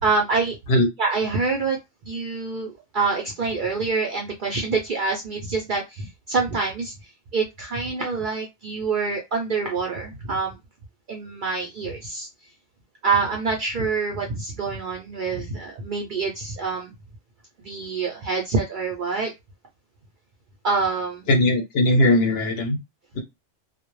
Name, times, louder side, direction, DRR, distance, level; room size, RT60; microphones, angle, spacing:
voice 1, 0.0-0.6 1.0-1.8 2.1-6.9 7.3-10.6 11.1-12.3 13.0-16.9 17.6-19.3 20.6-21.3, right 4 dB, 60° right, 1 dB, 0.5 m, -26 dB
voice 2, 21.3-22.8 23.1-23.2, left 1 dB, 65° left, 3 dB, 0.7 m, -19 dB
2.1 x 2.0 x 3.0 m, 0.21 s
omnidirectional pair, 1.3 m